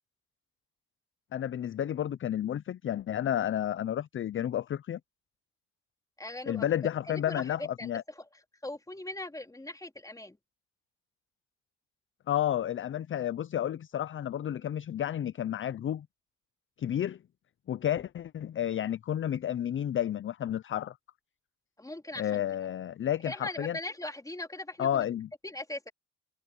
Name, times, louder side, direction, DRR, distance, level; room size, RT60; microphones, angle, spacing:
voice 1, 1.3-5.0 6.5-8.0 12.3-16.1 16.8-17.2 17.7-21.0 22.2-23.8 24.8-25.3, left 10 dB, 40° left, 0.6 m, -31 dB
voice 2, 6.2-6.6 7.1-8.3 8.6-10.4 21.8-22.4 23.3-25.0 25.4-25.9, left 1 dB, 10° left, 3.5 m, -40 dB
cardioid pair, 90°, 30 cm